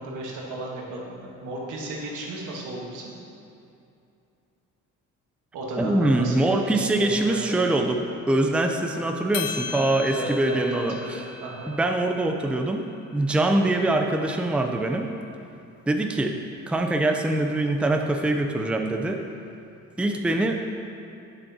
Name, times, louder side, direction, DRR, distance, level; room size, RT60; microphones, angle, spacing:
voice 1, 0.0-3.1 5.5-7.5 10.1-11.7, right 1 dB, 85° right, -2 dB, 1.3 m, -34 dB
voice 2, 5.8-11.0 11.7-12.9 13.1-15.1 15.9-16.4 16.7-19.2 20.0-20.6, right 2 dB, 5° right, 4 dB, 0.4 m, -23 dB
sound 1, 9.3-13.8, left 6 dB, 55° left, 0.7 m, -38 dB
8.3 x 6.9 x 2.8 m, 2.7 s
cardioid pair, 90°, 30 cm